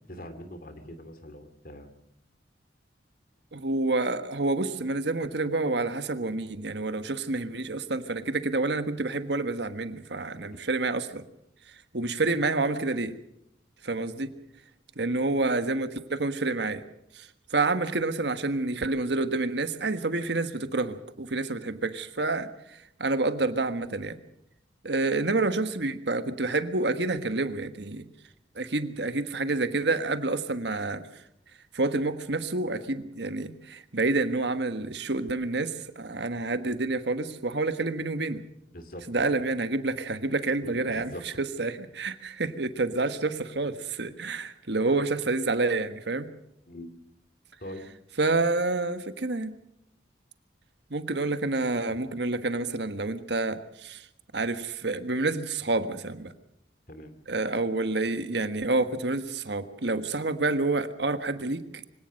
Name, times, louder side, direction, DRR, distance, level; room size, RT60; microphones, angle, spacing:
voice 1, 0.1-1.9 10.4-10.6 38.7-39.3 40.6-41.2 46.7-46.9 47.6-47.9 56.9-57.1, equal, 50° left, 9 dB, 2.7 m, -43 dB
voice 2, 3.5-11.2 11.9-13.1 13.8-14.3 15.0-16.8 17.1-22.5 23.0-24.2 24.8-28.0 28.5-31.1 31.7-38.4 39.1-46.3 48.2-49.5 50.9-54.0 54.3-56.3 57.3-61.8, right 3 dB, 65° right, 10 dB, 1.4 m, -28 dB
24.0 x 17.5 x 6.4 m, 0.78 s
head